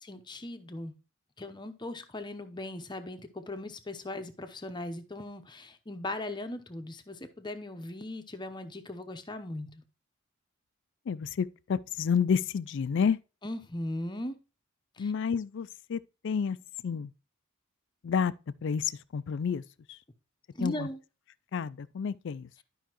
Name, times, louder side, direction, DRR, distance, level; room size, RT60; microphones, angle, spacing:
voice 1, 0.0-0.9 1.4-9.8 13.4-14.4 15.0-15.1 20.5-21.0, left 1 dB, 20° left, 0.8 m, -38 dB
voice 2, 11.1-13.2 15.0-16.6 16.8-17.1 18.0-18.3 18.6-19.6 20.6-20.9 21.5-22.5, left 6 dB, 60° left, 0.4 m, -30 dB
11.5 x 5.5 x 3.0 m
head